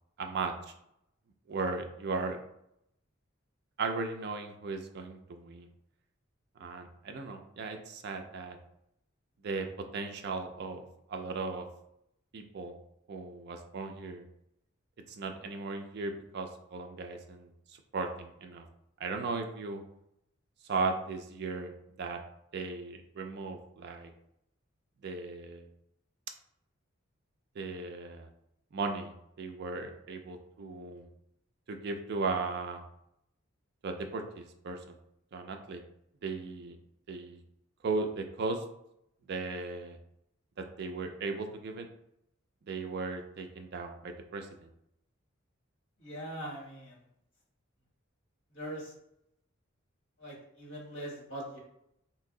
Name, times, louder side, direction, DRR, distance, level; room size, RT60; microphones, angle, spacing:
voice 1, 0.2-0.7 1.5-2.4 3.8-5.7 6.6-8.6 9.4-9.7 9.9-11.7 12.3-12.8 13.1-14.3 15.1-18.6 19.0-19.8 20.6-22.2 22.5-24.1 25.0-25.6 27.6-28.3 28.7-29.1 29.4-31.1 31.7-32.8 33.8-35.0 35.3-35.8 36.2-36.8 37.1-37.4 37.8-38.6 39.3-40.0 40.6-41.9 42.7-44.7, right 3 dB, 50° right, 5 dB, 0.4 m, -37 dB
voice 2, 46.0-46.9 48.5-48.9 50.2-51.6, right 1 dB, 60° left, -3 dB, 1.4 m, -41 dB
2.9 x 2.6 x 3.6 m, 0.78 s
head